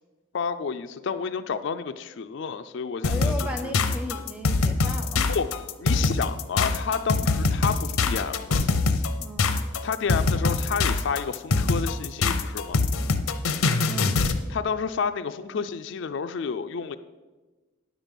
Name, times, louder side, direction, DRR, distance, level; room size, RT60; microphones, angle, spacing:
voice 1, 0.3-3.3 3.6-3.7 5.3-5.5 5.8-8.6 9.8-12.8 14.5-17.0, left 6 dB, 55° left, 9 dB, 0.4 m, -30 dB
sound 1, 3.0-14.4, left 3 dB, 90° left, 0.7 m, -23 dB
voice 2, 3.0-5.4 9.2-9.5 13.9-14.1, left 1 dB, 5° right, 6 dB, 0.7 m, -36 dB
9.9 x 7.3 x 5.3 m, 1.2 s
head